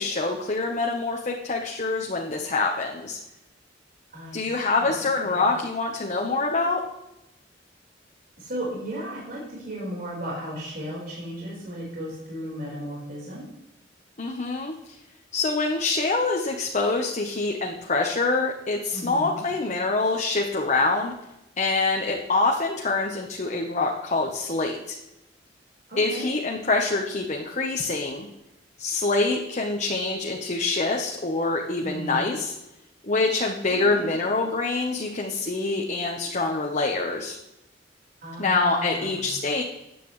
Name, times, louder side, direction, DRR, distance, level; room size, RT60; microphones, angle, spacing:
voice 1, 0.0-3.2 4.3-6.8 14.2-15.0 15.3-21.1 21.6-25.0 26.0-28.3 28.8-32.5 33.0-37.4 38.4-39.6, left 3 dB, 40° left, 1 dB, 1.0 m, -25 dB
voice 2, 4.1-5.6 8.4-13.4 18.9-19.5 25.9-26.3 31.8-32.3 33.7-34.1 38.2-39.3, equal, 55° right, -6 dB, 4.4 m, -35 dB
15.0 x 9.2 x 3.2 m, 0.91 s
head